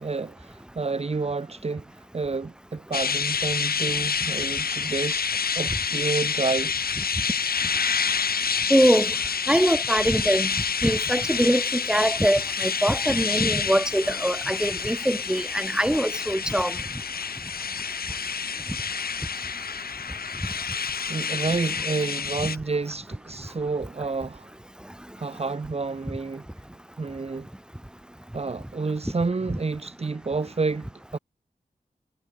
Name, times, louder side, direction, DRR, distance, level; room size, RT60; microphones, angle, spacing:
voice 1, 0.0-5.3 5.5-6.7 21.1-24.5 25.2-26.5 27.0-27.5 28.3-31.2, right 4 dB, 40° right, 1.4 m, -29 dB
sound 1, 2.9-22.6, left 6 dB, 75° left, 1.4 m, -28 dB
voice 2, 8.7-9.1 9.5-10.5 10.8-16.8, equal, 5° right, 3.9 m, -23 dB
wide cardioid pair, 90°, 16 cm